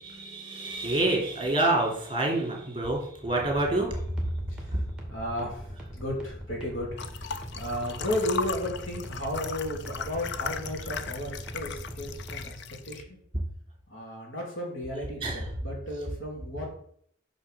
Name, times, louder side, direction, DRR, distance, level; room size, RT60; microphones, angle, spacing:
voice 1, 0.1-4.0 15.2-15.4, right 2 dB, 25° right, 0 dB, 2.7 m, -27 dB
sound 1, 3.3-12.5, equal, 5° right, 2.2 m, -41 dB
voice 2, 5.1-12.5 12.8-13.2 13.9-16.7, left 1 dB, 85° left, -1 dB, 3.2 m, -34 dB
sound 2, 7.0-13.0, left 6 dB, 65° left, 0.6 m, -37 dB
6.3 x 6.2 x 6.6 m, 0.64 s
head